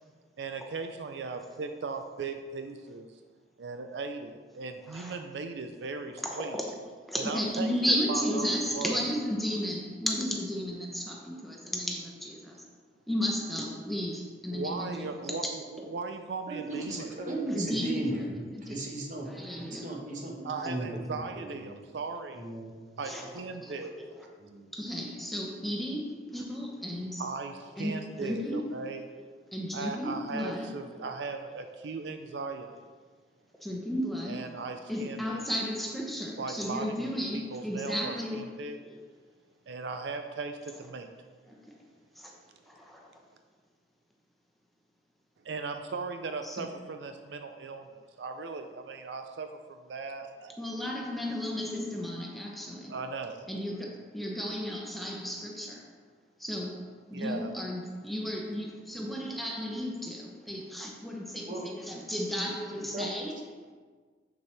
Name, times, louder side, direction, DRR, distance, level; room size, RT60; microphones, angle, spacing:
voice 1, 0.4-3.1 3.6-6.5 7.3-9.0 14.5-17.1 20.4-22.5 23.0-23.9 27.2-29.0 29.7-32.8 34.3-35.4 36.4-36.9 37.3-38.8 39.7-41.1 45.4-50.5 52.9-53.5 57.1-57.5, right 4 dB, 80° right, 7 dB, 0.5 m, -38 dB
voice 2, 4.8-5.2 6.2-12.7 13.1-15.4 15.8-15.9 16.8-17.2 17.5-18.2 18.5-18.9 19.2-20.0 20.6-20.7 23.0-24.3 24.7-29.2 29.5-31.9 32.2-32.8 33.6-39.0 40.6-40.9 41.5-41.6 42.1-42.3 42.6-43.1 46.4-46.8 50.6-53.0 53.5-55.9 56.4-63.6, equal, ahead, -2 dB, 0.8 m, -34 dB
voice 3, 16.5-18.4 18.7-19.3 19.5-21.8 22.4-23.1 24.4-24.7 61.5-61.6 62.9-63.1, right 2 dB, 45° right, -1 dB, 1.3 m, -36 dB
7.4 x 6.7 x 3.3 m, 1.5 s
head